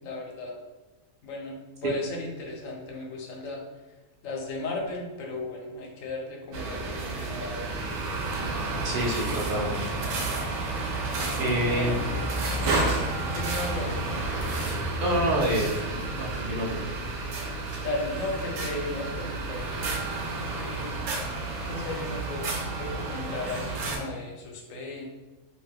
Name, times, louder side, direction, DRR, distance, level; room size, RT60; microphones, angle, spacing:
voice 1, 0.0-0.5 1.2-1.6 1.8-3.6 4.2-7.7 11.3-12.3 12.6-13.0 13.3-14.1 17.8-20.9 21.6-25.0, left 2 dB, 75° left, 0 dB, 1.0 m, -35 dB
sound 1, 6.0-6.1 6.8-7.2 8.2-8.3 10.1-10.4 11.0-15.4, left 1 dB, 45° left, 0.5 m, -38 dB
sound 2, 6.5-24.0, right 3 dB, 75° right, 0.9 m, -31 dB
voice 2, 8.8-9.8 11.4-12.0 15.0-16.9, right 1 dB, 60° right, -2 dB, 0.5 m, -27 dB
2.6 x 2.1 x 3.4 m, 1.2 s
omnidirectional pair, 1.4 m